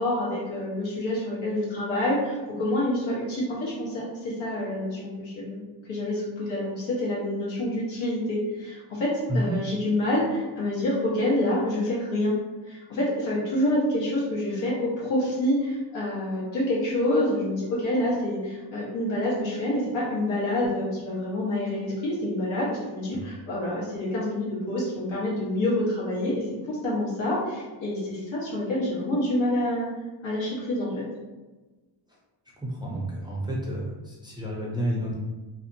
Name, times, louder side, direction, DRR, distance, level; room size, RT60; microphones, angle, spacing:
voice 1, 0.0-12.3 12.7-29.9 30.2-31.0, left 1 dB, 85° left, -7 dB, 1.3 m, -27 dB
voice 2, 32.6-35.2, equal, 10° right, -5 dB, 0.4 m, -30 dB
2.7 x 2.4 x 2.6 m, 1.2 s
cardioid pair, 135°, 47 cm